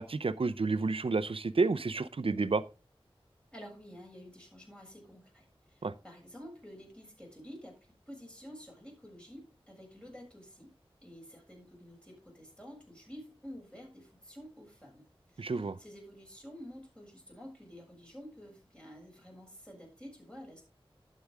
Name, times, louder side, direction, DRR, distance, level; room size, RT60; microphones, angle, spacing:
voice 1, 0.0-2.6 5.8-5.9 15.4-15.8, right 3 dB, 65° right, 0.7 m, -30 dB
voice 2, 3.5-7.8 8.1-10.7 11.0-20.6, equal, 10° left, 7.0 m, -50 dB
11.5 x 8.6 x 3.6 m
wide cardioid pair, 60°, 10 cm